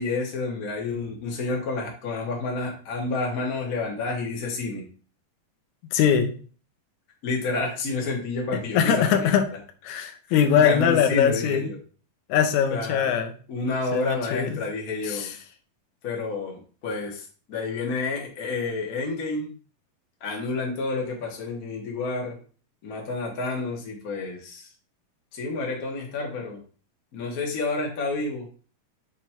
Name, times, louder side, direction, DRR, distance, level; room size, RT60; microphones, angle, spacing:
voice 1, 0.0-4.8 7.2-9.3 10.3-11.8 12.7-13.1 13.5-15.3 16.0-19.5 20.2-22.4 22.8-24.7 25.3-26.6 27.1-28.5, left 3 dB, 50° left, -1 dB, 1.1 m, -29 dB
voice 2, 5.9-6.3 8.7-9.5 9.8-11.7 12.3-13.3 13.9-14.6 15.0-15.3, left 8 dB, 75° left, 6 dB, 1.9 m, -22 dB
6.2 x 3.4 x 4.4 m, 0.41 s
omnidirectional pair, 4.1 m